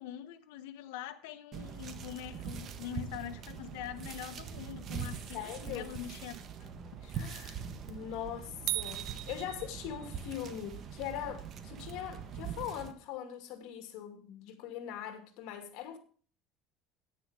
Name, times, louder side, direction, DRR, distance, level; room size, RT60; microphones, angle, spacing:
voice 1, 0.0-6.7 7.0-7.1, left 10 dB, 90° left, 1.2 m, -44 dB
sound 1, 1.5-12.9, right 7 dB, 40° right, 1.3 m, -43 dB
voice 2, 5.3-5.9 7.1-7.6 7.9-16.0, left 10 dB, 70° left, 2.5 m, -41 dB
sound 2, 8.7-10.3, right 19 dB, 60° right, 0.5 m, -37 dB
10.0 x 9.5 x 5.1 m
cardioid pair, 140°, 0 cm